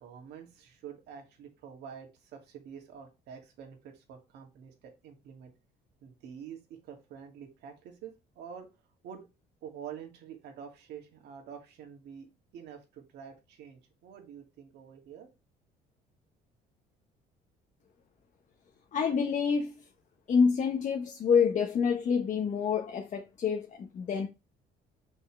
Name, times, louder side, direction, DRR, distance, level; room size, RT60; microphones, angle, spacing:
voice 1, 0.0-5.5 6.0-8.7 9.0-9.3 9.6-12.3 12.5-15.3, right 8 dB, 80° right, 2.4 m, -47 dB
voice 2, 18.9-19.8 20.3-24.3, left 6 dB, 50° left, 1.1 m, -27 dB
5.7 x 5.5 x 3.3 m
cardioid pair, 110°, 17 cm